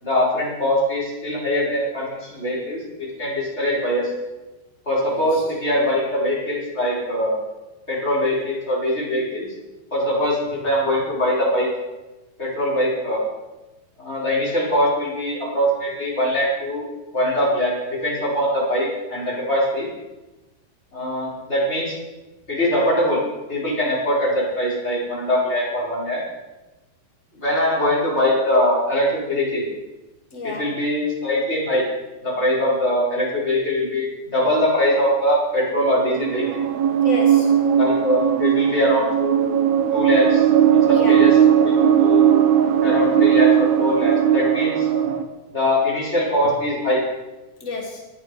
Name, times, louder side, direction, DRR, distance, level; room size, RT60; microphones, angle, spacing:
voice 1, 0.0-4.1 4.9-7.4 7.9-9.5 9.9-11.7 12.4-13.2 14.0-16.8 17.1-19.9 20.9-22.0 22.5-23.2 23.5-26.2 27.4-29.6 30.4-31.8 32.2-34.0 34.3-36.6 37.8-39.5 39.9-41.3 41.6-42.3 42.8-44.9 45.5-47.0, left 1 dB, 15° left, -5 dB, 5.3 m, -22 dB
voice 2, 5.1-5.4 30.3-30.8 37.0-37.6 40.9-41.4 45.0-45.1 47.6-48.1, left 3 dB, 45° left, 0 dB, 0.9 m, -31 dB
sound 1, 35.8-45.3, right 9 dB, 80° right, 3.0 m, -18 dB
19.0 x 13.0 x 4.9 m, 1.1 s
omnidirectional pair, 4.4 m